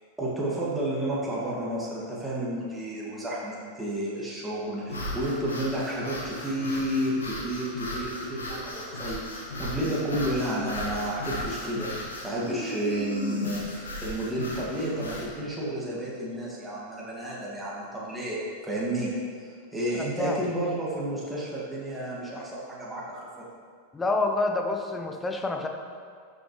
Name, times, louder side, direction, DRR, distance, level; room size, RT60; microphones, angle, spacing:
voice 1, 0.2-9.2 9.6-19.1 19.4-23.5, right 1 dB, 5° right, -6 dB, 2.1 m, -31 dB
sound 1, 4.8-15.3, left 1 dB, 70° left, 1.9 m, -36 dB
voice 2, 20.0-20.4 23.9-25.7, left 2 dB, 15° left, 4 dB, 0.9 m, -28 dB
12.5 x 6.8 x 3.2 m, 2.2 s
figure-of-eight pair, 90°, 0 cm